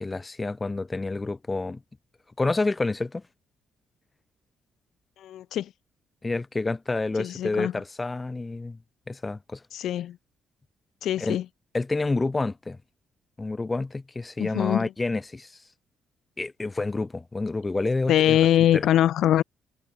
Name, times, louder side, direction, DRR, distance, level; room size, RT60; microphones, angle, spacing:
voice 1, 0.0-1.8 2.4-3.2 6.2-8.8 9.1-9.6 11.2-11.4 11.7-12.8 13.4-15.5 16.4-18.4 18.7-18.9, left 3 dB, 20° left, 0.5 m, -28 dB
voice 2, 5.2-5.7 7.2-7.7 9.7-10.2 11.0-11.4 14.4-14.9 18.1-19.4, left 11 dB, 75° left, 0.3 m, -23 dB
cardioid pair, 90°, 0 cm